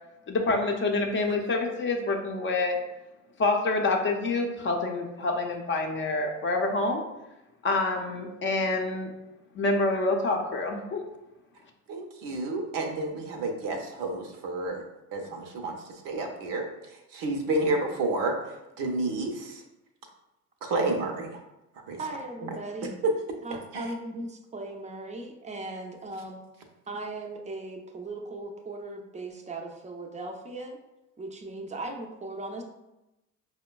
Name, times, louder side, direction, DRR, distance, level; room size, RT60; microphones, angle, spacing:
voice 1, 0.3-2.8 3.4-7.0 7.6-9.1 9.6-11.0, left 2 dB, 30° left, 2 dB, 0.6 m, -27 dB
voice 2, 11.9-14.8 15.1-19.6 20.6-21.4 21.9-22.0 22.4-22.5 23.0-23.1 23.7-23.9, right 2 dB, 60° right, 3 dB, 0.7 m, -30 dB
voice 3, 22.0-22.9 23.4-26.4 26.9-30.8 31.2-32.6, right 2 dB, 20° right, 3 dB, 0.5 m, -38 dB
4.9 x 2.1 x 2.2 m, 0.94 s
hypercardioid pair, 70°, 38 cm